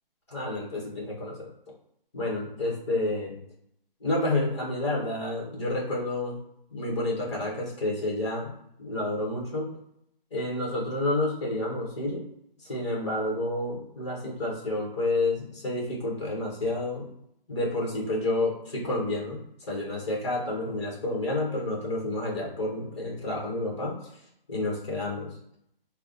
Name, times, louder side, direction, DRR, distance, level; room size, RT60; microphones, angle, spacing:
voice 1, 0.3-1.5 2.1-3.4 4.0-6.4 6.7-8.5 8.8-9.7 10.3-12.2 12.6-17.1 17.5-24.0 24.5-25.3, left 2 dB, 30° left, -3 dB, 1.4 m, -29 dB
3.3 x 2.1 x 3.9 m, 0.74 s
hypercardioid pair, 175°, 29 cm